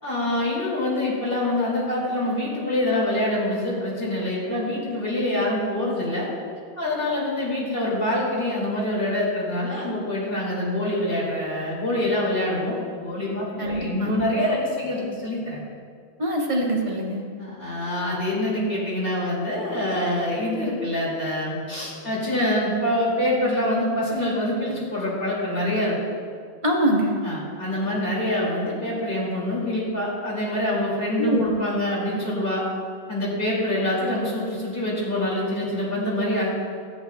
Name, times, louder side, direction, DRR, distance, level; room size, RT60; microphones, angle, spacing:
voice 1, 0.0-6.3 6.8-15.6 17.4-26.0 27.2-32.6 33.1-36.5, left 1 dB, 60° left, -6 dB, 2.9 m, -25 dB
voice 2, 13.6-14.3 16.2-17.2 26.6-27.2 31.2-31.5, right 1 dB, 30° right, -1 dB, 1.3 m, -24 dB
13.0 x 9.5 x 2.3 m, 2.2 s
omnidirectional pair, 1.1 m